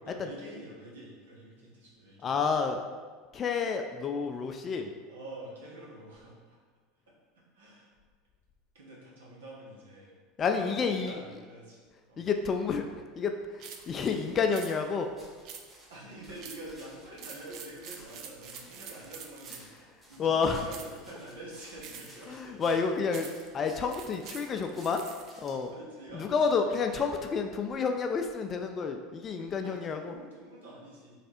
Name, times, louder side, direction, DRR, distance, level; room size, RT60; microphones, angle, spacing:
voice 1, 0.0-2.3 5.1-6.6 7.5-7.9 8.7-10.1 10.4-11.8 12.1-12.2 13.9-14.0 15.9-22.6 24.1-24.2 24.6-24.9 25.7-27.0 29.4-31.1, right 1 dB, 85° right, -4 dB, 1.2 m, -47 dB
voice 2, 2.2-2.8 3.3-4.9 10.4-11.2 12.2-12.8 13.2-15.1 20.2-20.7 22.3-23.3 23.5-25.0 25.4-25.7 26.1-30.1, left 5 dB, 35° left, 5 dB, 0.3 m, -29 dB
sound 1, 13.6-13.9 14.5-14.7 15.5-15.9 16.4-16.7 17.1-19.8 20.7-21.0 21.8-22.2 23.1-23.5 23.9-25.3, right 7 dB, 55° right, 0.5 m, -45 dB
sound 2, 13.7-25.7, right 1 dB, 15° right, 1.3 m, -57 dB
3.3 x 3.3 x 4.2 m, 1.5 s
hypercardioid pair, 85°, 0 cm